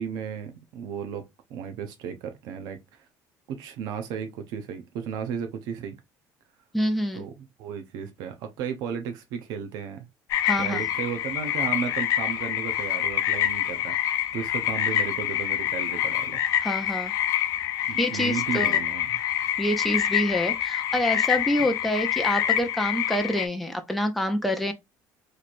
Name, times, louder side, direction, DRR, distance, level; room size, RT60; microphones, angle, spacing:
voice 1, 0.0-3.1 3.5-6.0 7.2-10.1 10.6-16.4 17.9-19.2, right 7 dB, 70° right, 0.7 m, -34 dB
voice 2, 6.7-7.2 10.4-10.8 16.6-17.1 18.0-18.8 19.6-24.7, left 1 dB, ahead, 0.5 m, -26 dB
sound 1, 10.3-23.5, left 11 dB, 55° left, 0.6 m, -26 dB
3.2 x 2.6 x 4.2 m
cardioid pair, 170°, 7 cm